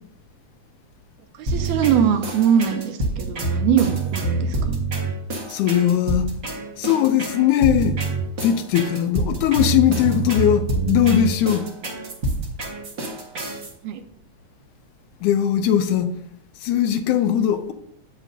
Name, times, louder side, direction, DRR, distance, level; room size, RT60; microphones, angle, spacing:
voice 1, 1.4-4.7 13.8-14.0, right 8 dB, 80° right, 2.0 m, -21 dB
sound 1, 1.5-13.7, right 2 dB, 60° right, 0.8 m, -26 dB
voice 2, 5.5-6.3 6.8-8.0 8.4-11.7 15.2-16.1 16.6-17.7, left 10 dB, 80° left, 2.0 m, -19 dB
8.5 x 7.2 x 2.7 m
omnidirectional pair, 3.6 m